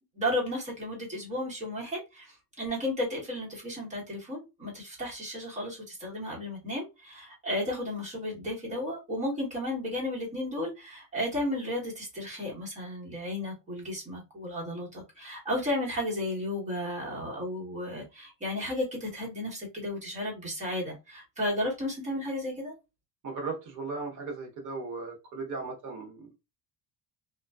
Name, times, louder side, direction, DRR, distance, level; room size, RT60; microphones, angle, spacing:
voice 1, 0.1-22.7, left 1 dB, 15° right, -3 dB, 1.0 m, -33 dB
voice 2, 23.2-26.4, right 4 dB, 40° right, 2 dB, 0.9 m, -37 dB
2.5 x 2.2 x 2.3 m, 0.25 s
cardioid pair, 165°, 46 cm